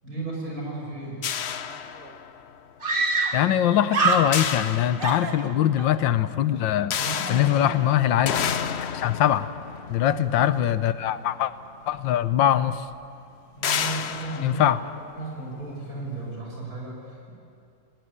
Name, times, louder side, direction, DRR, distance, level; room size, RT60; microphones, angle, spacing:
voice 1, 0.0-1.2 7.0-7.7 10.0-10.6 13.5-14.6 15.1-17.3, right 3 dB, 50° right, -2 dB, 6.6 m, -35 dB
sound 1, 1.2-2.6 4.3-5.6 6.9-11.3 12.3-12.4 12.8-12.9 13.6-15.6, left 8 dB, 60° left, 0.6 m, -31 dB
Screaming, 1.7-1.8 2.0-2.1 2.8-3.6 3.9-4.7 5.0-5.9, right 3 dB, 30° right, 1.3 m, -25 dB
voice 2, 3.3-7.0 7.3-8.4 8.8-9.5 9.9-11.5 11.9-12.8 14.4-14.8, left 11 dB, 80° left, 14 dB, 1.5 m, -22 dB
20.0 x 19.5 x 9.7 m, 2.5 s
omnidirectional pair, 2.0 m